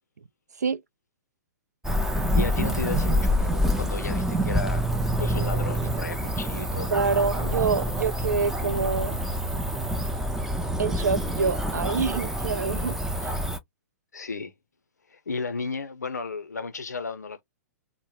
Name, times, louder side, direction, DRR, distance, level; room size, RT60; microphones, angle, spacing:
Cricket / Motor vehicle (road), 1.8-13.6, equal, 5° right, 0.4 m, -27 dB
voice 1, 2.3-4.9 5.2-6.9 14.1-14.5 15.1-17.4, left 4 dB, 80° left, 0.6 m, -34 dB
voice 2, 6.9-9.2 10.8-13.0 13.2-13.3, right 5 dB, 75° right, 0.4 m, -26 dB
2.0 x 2.0 x 3.1 m
figure-of-eight pair, 110°, 9 cm